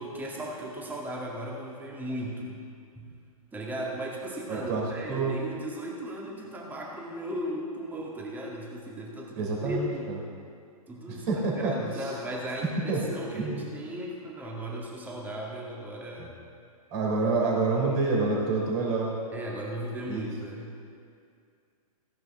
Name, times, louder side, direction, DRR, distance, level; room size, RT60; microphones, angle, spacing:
voice 1, 0.0-2.7 3.0-3.1 3.5-10.1 10.9-16.4 17.4-17.6 17.9-18.0 19.3-20.8, equal, 10° right, -2 dB, 1.9 m, -36 dB
voice 2, 4.5-5.3 9.4-10.2 11.1-12.1 12.9-13.0 13.3-13.6 16.2-16.3 16.9-19.1 20.1-20.2, right 3 dB, 35° right, -3 dB, 3.5 m, -28 dB
15.5 x 10.5 x 3.7 m, 2.3 s
figure-of-eight pair, 120°, 20 cm